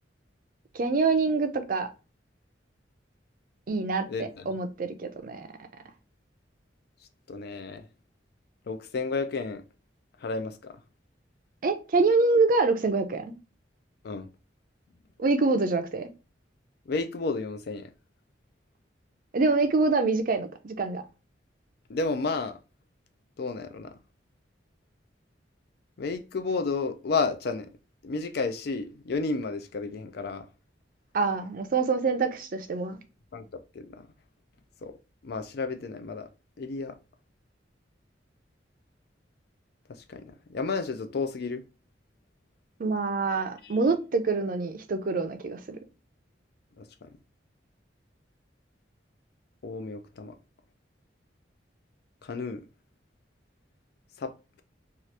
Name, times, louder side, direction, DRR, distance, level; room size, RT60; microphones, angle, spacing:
voice 1, 0.7-1.9 3.7-5.5 11.6-13.3 15.2-16.1 19.3-21.0 31.1-33.0 42.8-45.8, right 3 dB, 50° right, 0.4 m, -25 dB
voice 2, 4.1-4.5 7.3-7.9 8.7-9.6 10.2-10.8 14.0-14.3 16.9-17.9 21.9-22.6 23.4-24.0 26.0-27.7 28.0-30.5 33.3-33.5 33.7-34.1 34.8-34.9 35.2-36.3 36.6-37.0 39.9-41.6 43.6-43.8 46.8-47.1 49.6-50.4 52.2-52.7 54.2-54.3, left 4 dB, 55° left, 0.4 m, -32 dB
2.8 x 2.4 x 3.1 m
head